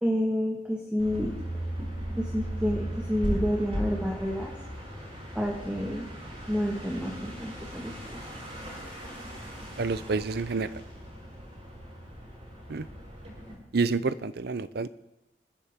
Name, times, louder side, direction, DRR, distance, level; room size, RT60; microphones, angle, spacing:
voice 1, 0.0-1.3 1.6-1.7 2.2-4.5 5.3-6.1 6.5-8.2, equal, 5° right, -1 dB, 1.6 m, -29 dB
sound 1, 1.0-13.5, equal, 40° right, 5.7 m, -37 dB
voice 2, 9.8-10.8 12.7-12.9 13.7-14.9, right 4 dB, 65° right, 15 dB, 0.6 m, -28 dB
28.5 x 10.0 x 3.7 m, 0.96 s
head